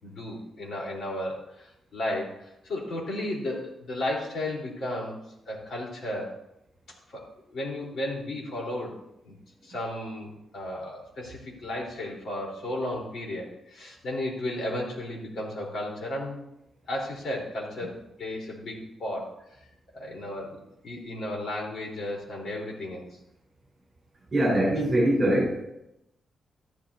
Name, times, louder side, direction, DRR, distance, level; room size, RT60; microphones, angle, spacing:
voice 1, 0.0-5.2 5.5-6.4 7.1-7.2 7.5-9.0 9.2-9.3 9.6-16.4 16.9-19.3 19.9-23.2, left 1 dB, 55° left, -2 dB, 3.8 m, -34 dB
voice 2, 24.3-25.7, right 1 dB, 30° right, -4 dB, 5.0 m, -23 dB
13.5 x 11.5 x 2.7 m, 0.82 s
wide cardioid pair, 170°, 0 cm